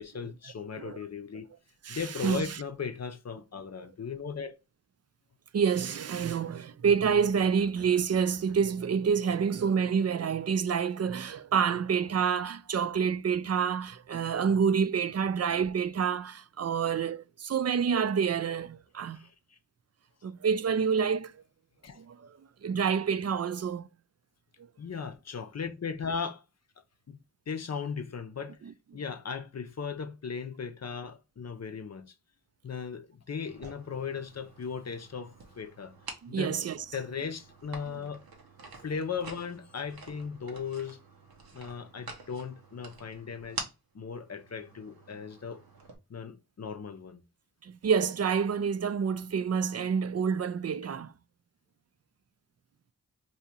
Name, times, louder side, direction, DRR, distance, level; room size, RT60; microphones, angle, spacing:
voice 1, 0.0-1.5 1.9-4.6 19.1-19.6 20.2-20.3 21.8-22.0 24.8-26.4 27.1-27.2 27.5-28.6 28.9-32.1 32.6-35.9 36.3-36.6 36.9-38.2 38.8-41.0 41.5-43.6 43.9-45.6 46.1-47.2, left 6 dB, 50° left, 0.6 m, -37 dB
voice 2, 1.8-2.4 5.5-19.2 20.2-21.3 22.0-22.3 22.6-23.9 36.2-36.8 47.6-51.1, right 6 dB, 45° right, 0.4 m, -28 dB
sound 1, 33.5-45.9, right 4 dB, 85° right, 0.8 m, -47 dB
2.7 x 2.5 x 4.2 m
cardioid pair, 40°, 35 cm